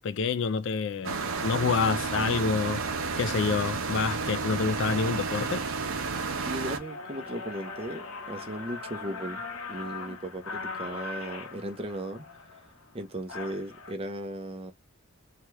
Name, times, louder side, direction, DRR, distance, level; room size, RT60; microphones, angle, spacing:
voice 1, 0.0-2.8 3.2-5.6, left 5 dB, 55° left, 0.3 m, -28 dB
sound 1, 1.0-6.8, right 4 dB, 75° right, 0.6 m, -31 dB
sound 2, 1.9-2.0 2.6-2.8 3.3-3.7 4.2-4.3 4.5-13.9, left 3 dB, 85° left, 0.9 m, -41 dB
voice 2, 6.4-9.4 9.7-12.2 12.9-14.7, right 1 dB, 25° right, 0.6 m, -37 dB
2.8 x 2.3 x 3.2 m
head